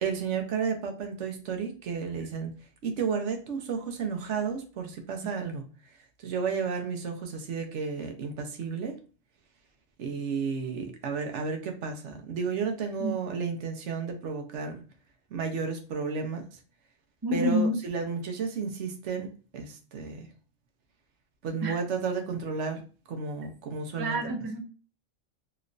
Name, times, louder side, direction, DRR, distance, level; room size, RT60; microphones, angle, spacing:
voice 1, 0.0-2.5 2.8-5.6 6.2-8.9 10.0-14.8 15.3-16.4 17.3-19.3 19.5-20.3 21.4-22.8 23.1-24.2, right 5 dB, 65° right, 4 dB, 0.9 m, -32 dB
voice 2, 17.2-17.8 21.6-21.8 24.0-24.6, equal, 35° right, 2 dB, 0.4 m, -28 dB
3.1 x 3.0 x 2.5 m, 0.37 s
omnidirectional pair, 1.3 m